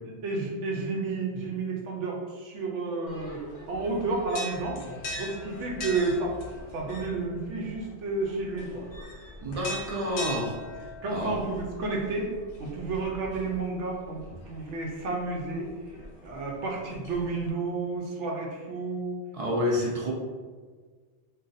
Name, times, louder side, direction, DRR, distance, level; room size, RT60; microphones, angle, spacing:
voice 1, 0.2-4.8 5.2-6.4 6.7-8.9 11.0-12.3 12.6-14.2 14.5-15.7 16.2-19.2, right 3 dB, 75° right, -1 dB, 1.0 m, -31 dB
sound 1, 3.1-17.5, left 1 dB, 60° left, 0.6 m, -42 dB
voice 2, 9.4-10.6 11.1-11.4 19.3-20.1, left 1 dB, 55° right, -2 dB, 0.4 m, -28 dB
2.6 x 2.3 x 3.8 m, 1.5 s
omnidirectional pair, 1.2 m